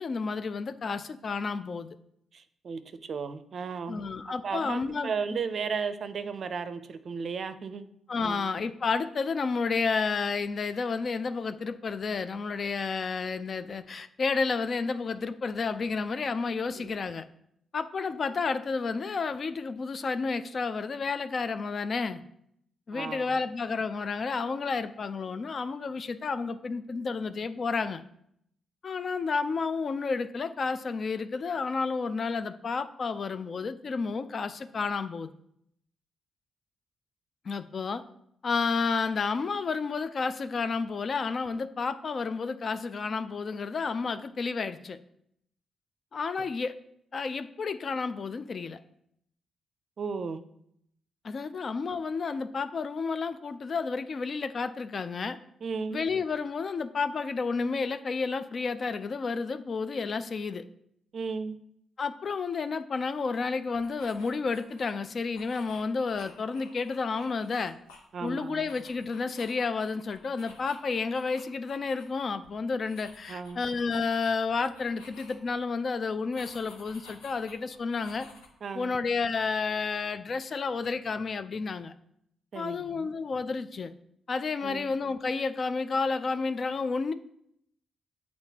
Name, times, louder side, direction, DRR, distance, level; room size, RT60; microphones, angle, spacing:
voice 1, 0.0-1.9 3.9-5.4 8.1-17.2 17.7-22.2 22.9-28.0 28.8-35.3 37.4-38.0 38.4-45.0 46.1-46.7 47.1-48.8 51.2-55.4 55.9-60.6 62.0-67.8 68.2-78.3 78.7-81.9 82.5-83.9 84.3-87.1, left 4 dB, 50° left, 12 dB, 0.4 m, -31 dB
voice 2, 2.3-4.1 4.4-7.9 8.2-8.5 16.8-16.9 22.9-23.4 50.0-50.4 55.6-56.1 61.1-61.6 68.1-68.7 73.3-73.6 78.6-78.9 82.5-83.1 84.6-84.9, right 5 dB, 55° right, 11 dB, 0.5 m, -35 dB
sound 1, 63.7-64.9 65.3-68.3 68.6-72.0 72.3-72.5 72.8-75.6 76.3-78.5, left 3 dB, 90° left, 0.8 m, -53 dB
7.9 x 4.2 x 2.8 m, 0.73 s
hypercardioid pair, 45°, 0 cm